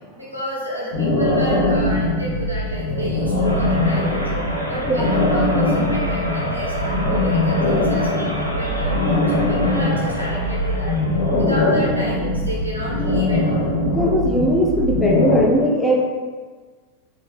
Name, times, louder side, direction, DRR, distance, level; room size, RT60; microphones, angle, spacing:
voice 1, 0.2-4.4 4.7-9.0 9.3-11.0 11.3-13.7, equal, 85° right, -6 dB, 1.2 m, -31 dB
sound 1, 0.9-15.4, left 1 dB, 60° left, 0.9 m, -21 dB
sound 2, 3.4-11.4, equal, 90° left, 0.6 m, -29 dB
voice 2, 13.9-16.1, equal, 10° left, -2 dB, 0.7 m, -19 dB
4.2 x 2.7 x 3.4 m, 1.4 s
figure-of-eight pair, 90°, 0 cm